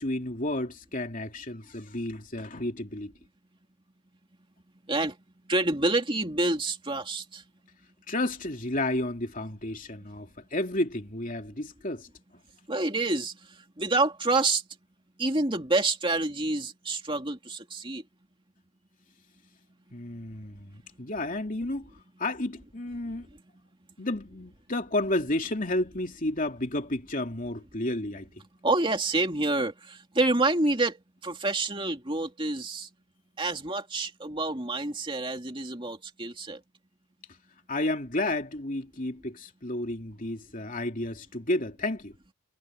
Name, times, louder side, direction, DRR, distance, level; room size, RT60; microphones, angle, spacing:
voice 1, 0.0-3.1 8.1-12.1 19.9-21.9 22.2-23.3 24.0-28.3 37.7-42.1, left 1 dB, 35° left, 3.0 m, -31 dB
voice 2, 5.5-7.4 12.7-13.4 13.8-14.6 15.2-18.0 28.6-32.9 33.4-36.6, right 2 dB, 25° right, 2.7 m, -27 dB
head